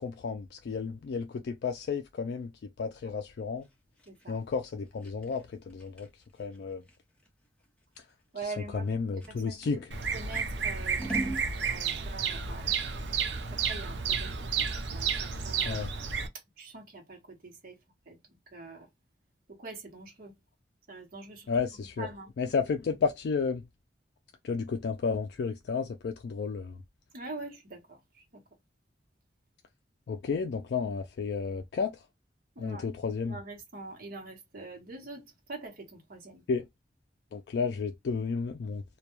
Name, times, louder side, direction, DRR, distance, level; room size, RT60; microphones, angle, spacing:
voice 1, 0.0-3.7 4.3-6.8 8.0-8.1 8.4-9.9 15.6-15.9 21.5-22.1 22.4-23.7 24.4-26.8 30.1-32.1 32.6-33.4 36.5-36.7 37.3-38.8, left 5 dB, 60° left, 0.3 m, -32 dB
Scissors, 3.6-9.8 10.3-11.5, right 2 dB, 5° left, 0.6 m, -42 dB
voice 2, 8.3-8.9 9.3-9.8 10.1-12.7 13.5-15.8 16.6-17.8 18.1-18.2 18.5-18.9 19.5-20.3 20.9-21.5 22.0-22.3 27.1-28.4 32.6-32.8 33.2-36.4, right 3 dB, 55° right, 0.9 m, -44 dB
Bird vocalization bird call bird song, 9.9-16.3, right 6 dB, 75° right, 0.5 m, -31 dB
2.2 x 2.2 x 2.9 m
head